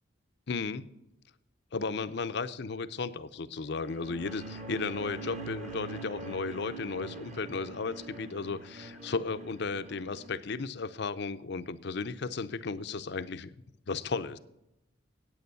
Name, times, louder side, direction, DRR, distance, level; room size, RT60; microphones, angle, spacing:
voice 1, 0.5-0.9 1.7-13.5 13.9-14.4, left 4 dB, 60° left, 13 dB, 0.6 m, -34 dB
sound 1, 3.7-10.3, right 2 dB, 35° right, 1.2 m, -44 dB
9.4 x 8.6 x 6.9 m, 0.85 s
head